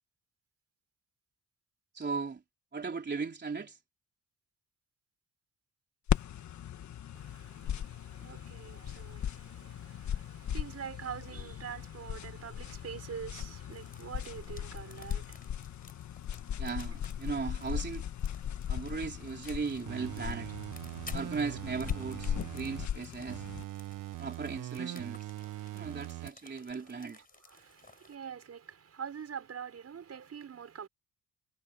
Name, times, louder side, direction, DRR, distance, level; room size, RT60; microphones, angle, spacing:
voice 1, 1.9-2.4 2.7-3.8 16.6-18.0 18.7-20.6 21.1-23.5 24.2-25.3 25.7-27.2, right 5 dB, 35° right, 3.6 m, -37 dB
sound 1, 6.1-23.6, left 9 dB, 65° left, 1.5 m, -38 dB
voice 2, 7.1-15.5 25.4-26.9 27.5-30.9, right 7 dB, 50° right, 6.0 m, -45 dB
sound 2, 13.7-28.2, left 4 dB, 30° left, 4.9 m, -56 dB
sound 3, 19.9-22.9 23.3-26.3 26.7-26.8, right 15 dB, 80° right, 1.1 m, -41 dB
cardioid pair, 80°, 31 cm